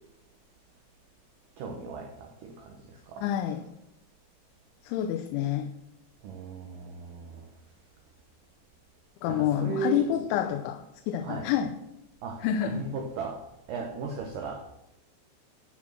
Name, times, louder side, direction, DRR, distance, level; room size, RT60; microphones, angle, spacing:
voice 1, 1.6-3.3 6.2-7.5 9.3-10.3 11.2-11.5 12.2-13.4 13.7-14.6, right 4 dB, 80° right, 3 dB, 1.9 m, -36 dB
voice 2, 3.2-3.6 4.8-5.7 9.2-11.7 12.4-12.8, left 10 dB, 85° left, 6 dB, 3.1 m, -28 dB
13.0 x 6.0 x 6.2 m, 0.86 s
omnidirectional pair, 5.3 m